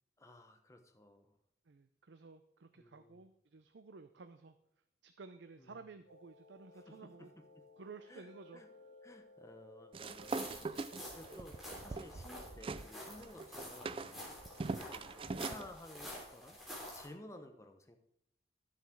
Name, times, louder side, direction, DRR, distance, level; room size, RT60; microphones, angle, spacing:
voice 1, 0.2-1.4 2.8-3.2 5.6-5.8 6.7-7.6 8.1-8.7 9.0-10.8 11.1-14.3 14.9-16.6 16.9-18.0, left 1 dB, 15° left, 6 dB, 0.8 m, -55 dB
voice 2, 1.7-4.6 5.0-7.3 7.8-8.6, right 4 dB, 80° right, 10 dB, 0.6 m, -54 dB
sound 1, 6.0-15.6, left 3 dB, 80° left, 2.1 m, -61 dB
sound 2, 9.9-12.9 13.2-15.7, right 3 dB, 30° right, 0.3 m, -42 dB
sound 3, 10.1-17.1, equal, ahead, 3.1 m, -49 dB
12.0 x 7.2 x 4.6 m, 0.80 s
head